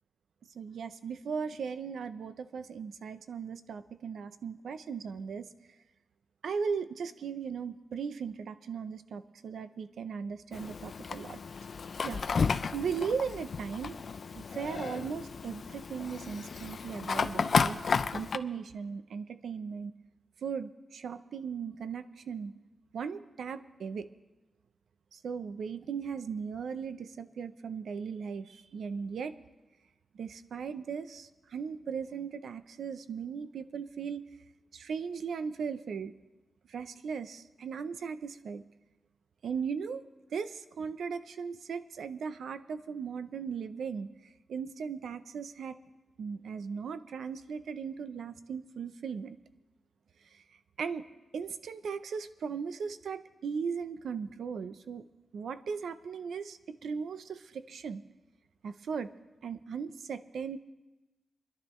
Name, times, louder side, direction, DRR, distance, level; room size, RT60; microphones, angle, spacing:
voice 1, 0.5-5.5 6.4-11.4 12.0-12.2 12.7-14.0 14.4-17.8 18.1-19.9 20.4-22.5 22.9-24.1 25.1-29.4 30.1-34.3 34.7-36.1 36.7-38.6 39.4-40.0 40.3-44.1 44.5-45.8 46.2-49.4 50.3-50.4 50.8-51.0 51.3-55.1 55.3-58.0 58.6-59.1 59.4-60.6, right 6 dB, 80° right, 12 dB, 0.6 m, -37 dB
Fire, 10.5-18.4, left 5 dB, 50° left, 0.4 m, -33 dB
25.0 x 11.5 x 3.1 m, 1.1 s
wide cardioid pair, 155°, 0 cm